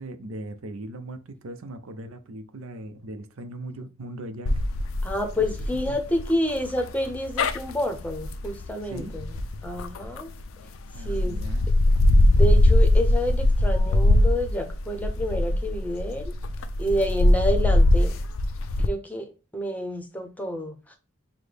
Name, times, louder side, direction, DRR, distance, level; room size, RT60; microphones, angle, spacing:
voice 1, 0.0-4.6 5.4-5.5 5.9-6.0 8.8-9.1 10.9-11.7, right 1 dB, 75° right, 0.6 m, -39 dB
sound 1, 4.5-10.4 10.9-18.9, left 1 dB, 70° left, 0.4 m, -21 dB
voice 2, 5.0-9.3 9.6-10.3 11.0-11.4 12.3-16.3 16.8-18.1 18.8-20.9, equal, 10° left, 0.7 m, -29 dB
5.9 x 2.1 x 3.4 m
head